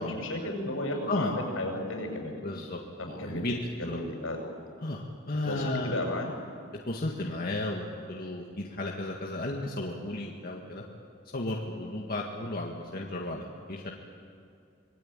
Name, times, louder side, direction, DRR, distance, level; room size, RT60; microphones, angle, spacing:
voice 1, 0.0-2.4 3.0-3.5 3.8-4.4 5.4-6.3, left 1 dB, 85° left, 2 dB, 6.7 m, -33 dB
voice 2, 2.4-2.8 3.1-3.6 3.9-4.0 4.8-6.0 6.8-10.8 11.3-13.9, left 2 dB, 50° left, -1 dB, 1.9 m, -34 dB
25.5 x 20.5 x 9.0 m, 2.4 s
head